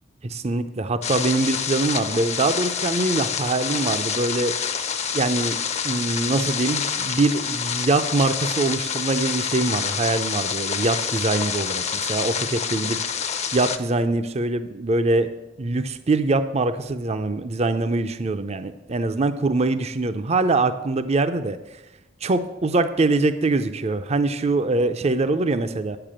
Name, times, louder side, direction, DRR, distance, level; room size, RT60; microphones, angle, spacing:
voice 1, 0.2-4.5 5.1-5.6 5.8-13.0 13.5-21.6 22.2-26.0, right 2 dB, 35° right, 10 dB, 0.5 m, -23 dB
sound 1, 1.0-13.8, left 7 dB, 35° left, 0.7 m, -27 dB
9.3 x 6.8 x 7.5 m, 0.99 s
head